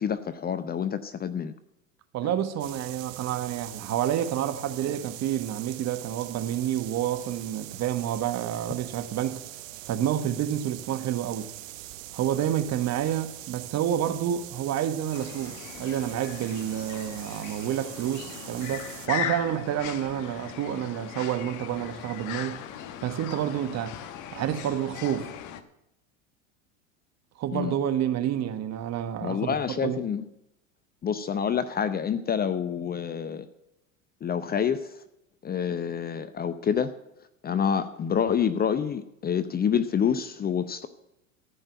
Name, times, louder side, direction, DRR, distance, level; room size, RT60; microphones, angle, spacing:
voice 1, 0.0-1.5 2.2-2.3 27.5-27.7 29.2-30.3 31.0-33.5 34.2-34.8 35.4-36.9 37.4-40.9, left 7 dB, 25° left, 0.7 m, -27 dB
voice 2, 2.1-9.4 9.9-11.5 12.1-22.6 23.0-24.0 24.3-25.3 27.4-30.0, right 10 dB, 40° right, 1.4 m, -29 dB
sound 1, 2.6-19.1, right 15 dB, 75° right, 0.9 m, -43 dB
sound 2, 15.1-25.6, left 10 dB, 50° left, 1.2 m, -39 dB
14.5 x 5.4 x 9.2 m
hypercardioid pair, 90°, 39 cm